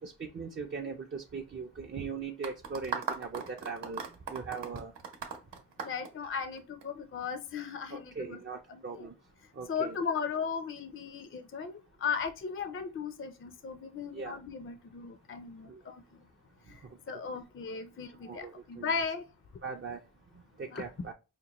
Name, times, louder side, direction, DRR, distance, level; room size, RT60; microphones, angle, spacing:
voice 1, 0.0-4.0 4.3-4.9 7.9-9.1 9.6-10.0 14.1-14.4 15.7-15.8 18.3-18.9 19.6-20.0 20.6-21.1, right 5 dB, 30° right, 0.5 m, -40 dB
sound 1, 2.4-6.8, right 5 dB, 80° right, 0.8 m, -38 dB
voice 2, 5.8-8.4 8.7-9.1 9.7-16.0 16.7-16.8 17.1-19.3 20.7-20.8, left 6 dB, 30° left, 0.4 m, -36 dB
5.1 x 2.1 x 2.9 m
cardioid pair, 65°, 42 cm